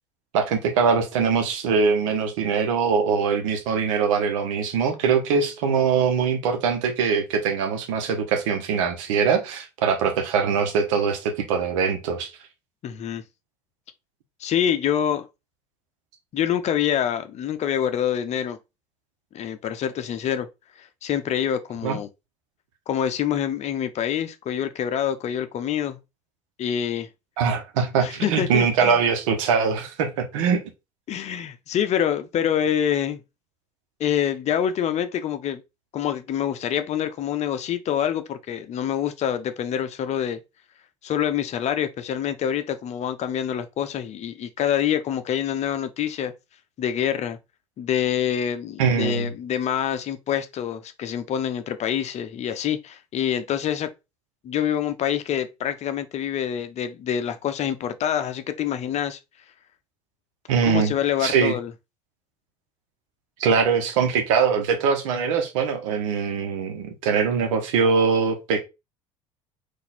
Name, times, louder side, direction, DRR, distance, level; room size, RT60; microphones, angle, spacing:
voice 1, 0.3-12.3 21.8-22.0 27.4-30.6 48.8-49.3 60.5-60.9 61.2-61.6 63.4-68.6, right 6 dB, 70° right, 1.1 m, -22 dB
voice 2, 12.8-13.2 14.4-15.3 16.3-18.6 19.3-20.5 20.8-22.1 22.9-26.0 26.6-27.1 28.0-29.0 31.1-33.2 34.0-35.6 35.9-40.4 41.0-46.3 46.8-47.4 47.8-53.9 54.4-59.2 60.7-61.7, left 9 dB, 40° left, 0.7 m, -26 dB
4.0 x 2.6 x 4.2 m
figure-of-eight pair, 65°, 17 cm